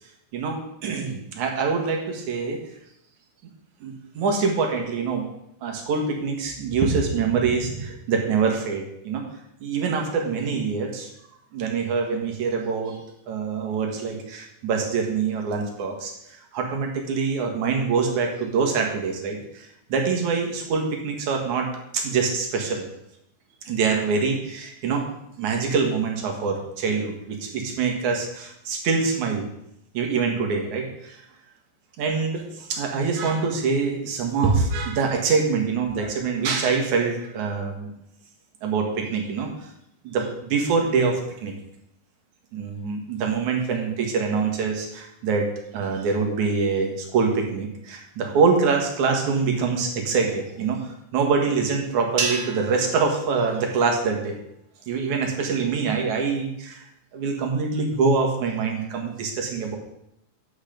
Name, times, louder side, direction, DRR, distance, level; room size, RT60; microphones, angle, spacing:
voice 1, 0.3-2.6 3.8-5.2 5.6-9.2 9.6-11.1 11.5-13.0 13.3-21.7 21.9-22.8 23.6-25.1 25.4-29.5 29.9-31.2 32.0-37.9 38.6-39.5 40.0-41.5 42.5-54.4 54.9-56.9 57.1-59.8, right 5 dB, 70° right, 2 dB, 3.2 m, -25 dB
sound 1, 52.2-54.6, right 4 dB, 45° right, 1.0 m, -33 dB
10.5 x 8.3 x 5.2 m, 0.80 s
omnidirectional pair, 3.5 m